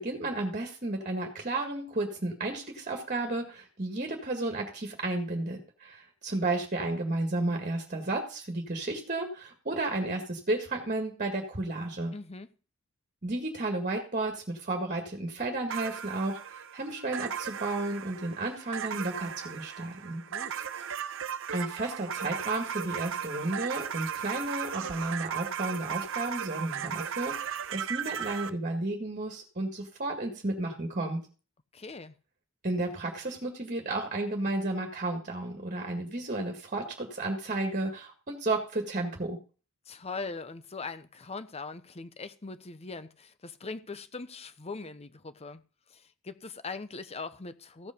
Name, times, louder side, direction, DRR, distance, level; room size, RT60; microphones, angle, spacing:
voice 1, 0.0-12.1 13.2-20.2 21.5-31.2 32.6-39.4, right 2 dB, 40° right, 2.0 m, -32 dB
voice 2, 12.1-12.5 20.3-20.6 31.7-32.2 39.9-45.6 45.9-47.9, left 4 dB, 30° left, 0.8 m, -41 dB
sound 1, 15.7-28.5, right 8 dB, 65° right, 0.7 m, -36 dB
15.5 x 5.4 x 5.1 m
head